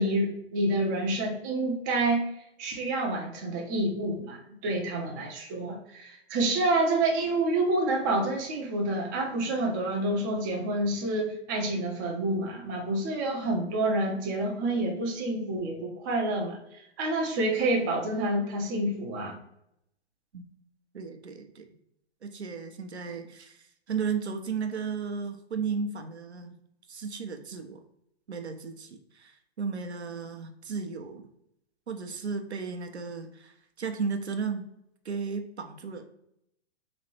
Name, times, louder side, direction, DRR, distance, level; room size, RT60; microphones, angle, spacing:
voice 1, 0.0-2.3 2.6-19.4, right 2 dB, 20° right, 1 dB, 0.4 m, -28 dB
voice 2, 20.9-21.7 22.2-23.6 23.9-26.5 26.9-27.8 28.3-29.3 29.6-31.3 31.9-34.7 35.1-36.1, right 5 dB, 80° right, 6 dB, 0.6 m, -34 dB
3.2 x 3.1 x 2.8 m, 0.78 s
figure-of-eight pair, 115°, 33 cm